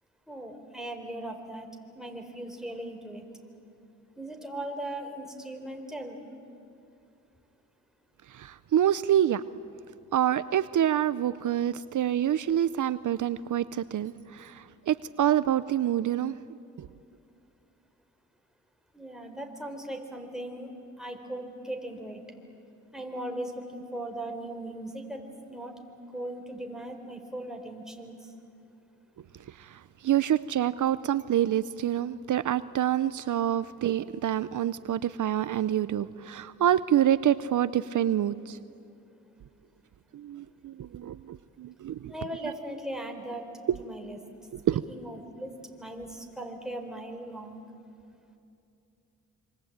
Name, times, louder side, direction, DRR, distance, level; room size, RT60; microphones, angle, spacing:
voice 1, 0.3-1.7 1.9-3.2 4.2-6.2 18.9-20.7 21.0-22.2 22.9-25.2 25.5-25.8 26.1-28.3 42.1-43.5 43.8-44.2 44.9-47.6, right 1 dB, ahead, 3 dB, 4.4 m, -38 dB
voice 2, 8.3-9.4 10.1-16.3 16.8-16.9 29.6-38.6 40.1-42.1 44.7-44.8, right 11 dB, 70° right, 15 dB, 0.7 m, -27 dB
26.5 x 25.5 x 8.8 m, 2.6 s
cardioid pair, 70°, 32 cm